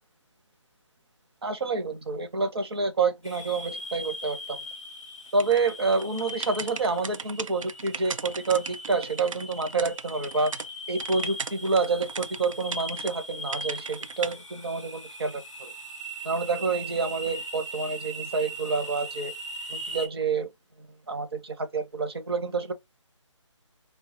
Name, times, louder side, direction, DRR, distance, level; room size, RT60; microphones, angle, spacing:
voice 1, 1.4-4.6 5.3-10.5 10.9-15.7 16.2-19.3 19.7-20.5 21.1-22.7, right 4 dB, 50° right, 0.8 m, -28 dB
sound 1, 3.2-20.1, equal, 10° right, 0.4 m, -39 dB
sound 2, 5.4-10.7 11.0-13.1 13.5-14.3, right 5 dB, 90° right, 0.5 m, -37 dB
3.3 x 2.3 x 3.7 m
hypercardioid pair, 175°, 16 cm